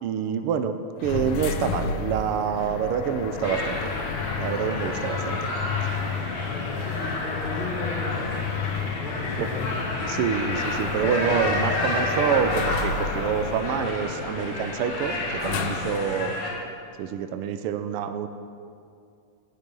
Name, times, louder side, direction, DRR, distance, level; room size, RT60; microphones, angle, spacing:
voice 1, 0.0-3.9 4.4-5.5 9.4-9.5 10.1-16.4 17.0-18.3, right 7 dB, 80° right, 9 dB, 1.2 m, -27 dB
sound 1, 1.0-16.2, left 6 dB, 80° left, 2.2 m, -32 dB
sound 2, 3.4-16.5, left 1 dB, 50° left, 3.1 m, -31 dB
voice 2, 6.1-8.4 8.8-10.0 13.7-13.9 15.2-15.4 15.7-16.4, left 2 dB, 25° left, -1 dB, 1.4 m, -37 dB
19.5 x 8.8 x 5.4 m, 2.4 s
omnidirectional pair, 3.3 m